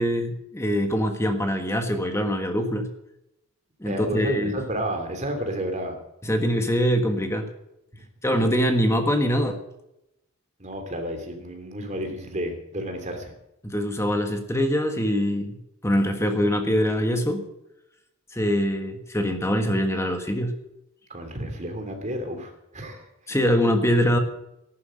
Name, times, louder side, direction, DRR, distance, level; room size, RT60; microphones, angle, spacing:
voice 1, 0.0-2.9 3.8-4.6 6.2-7.5 8.2-9.6 13.6-15.6 15.8-17.4 18.3-20.6 23.3-24.2, equal, 10° left, 5 dB, 1.4 m, -23 dB
voice 2, 3.8-6.0 10.6-13.3 21.1-23.0, right 1 dB, 30° right, 4 dB, 3.0 m, -31 dB
14.0 x 12.0 x 6.5 m, 0.87 s
head